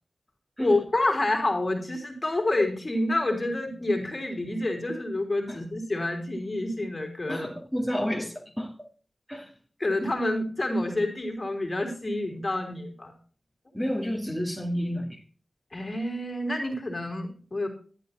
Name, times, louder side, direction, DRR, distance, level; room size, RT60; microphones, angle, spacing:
voice 1, 0.6-7.5 9.8-13.1 15.7-17.7, left 2 dB, 35° left, 2 dB, 3.4 m, -28 dB
voice 2, 7.3-8.7 9.3-9.5 13.7-15.2, equal, ahead, -1 dB, 2.5 m, -30 dB
11.0 x 9.3 x 4.2 m, 0.40 s
wide cardioid pair, 65°, 0 cm